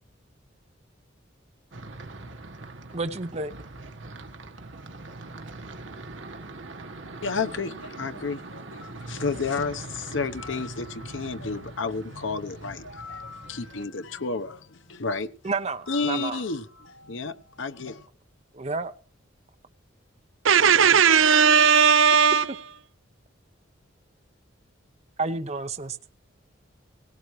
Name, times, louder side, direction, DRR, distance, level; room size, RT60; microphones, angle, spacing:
sound 1, 1.7-13.8, right 2 dB, 70° right, 1.5 m, -42 dB
voice 1, 2.9-3.5 15.4-16.4 18.5-18.9 25.2-26.0, right 3 dB, 35° right, 0.8 m, -30 dB
voice 2, 7.2-15.3 15.9-18.1, left 4 dB, 75° left, 1.0 m, -31 dB
voice 3, 20.4-22.4, right 6 dB, 90° right, 0.8 m, -17 dB
18.5 x 17.0 x 3.2 m
head